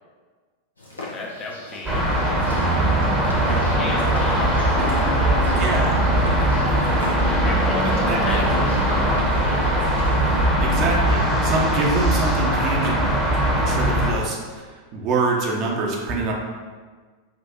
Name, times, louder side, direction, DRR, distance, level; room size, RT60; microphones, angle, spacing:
sound 1, 0.8-10.5, left 1 dB, 80° left, 0.8 m, -40 dB
voice 1, 0.9-7.0 7.4-9.9, left 3 dB, 30° left, -1 dB, 0.7 m, -34 dB
sound 2, 1.9-14.1, right 1 dB, ahead, 0.9 m, -20 dB
voice 2, 5.6-6.0 8.0-8.4 10.6-13.2 13.6-14.6 14.9-16.3, right 3 dB, 35° right, -1 dB, 0.7 m, -25 dB
5.8 x 2.5 x 2.9 m, 1.5 s
figure-of-eight pair, 90°, 0 cm